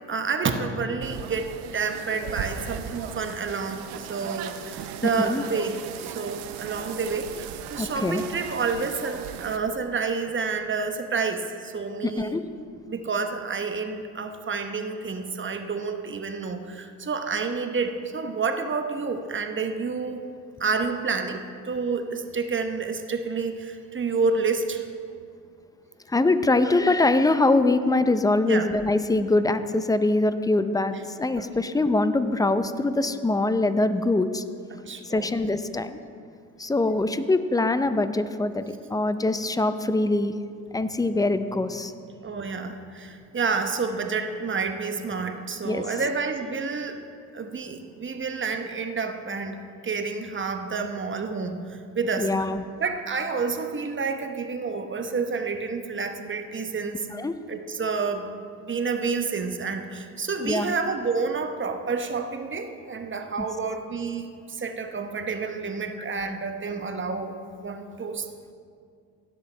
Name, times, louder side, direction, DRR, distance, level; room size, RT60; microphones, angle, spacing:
voice 1, 0.1-12.4 12.9-20.2 20.6-24.9 28.4-28.7 31.4-31.5 34.7-35.3 42.2-47.0 47.3-49.6 49.8-52.3 52.8-57.1 57.5-58.3 58.6-68.3, right 4 dB, 30° right, 6 dB, 1.0 m, -29 dB
sound 1, 1.0-9.6, right 8 dB, 75° right, 0.8 m, -37 dB
voice 2, 5.0-5.4 7.8-8.2 12.0-12.4 26.1-34.4 35.0-36.0 36.6-40.3 40.7-41.9 45.6-45.9 52.2-52.6 57.1-57.3 60.4-60.7 63.4-63.5, left 2 dB, 10° left, 11 dB, 0.6 m, -23 dB
17.0 x 7.7 x 3.3 m, 2.3 s
hypercardioid pair, 65°, 40 cm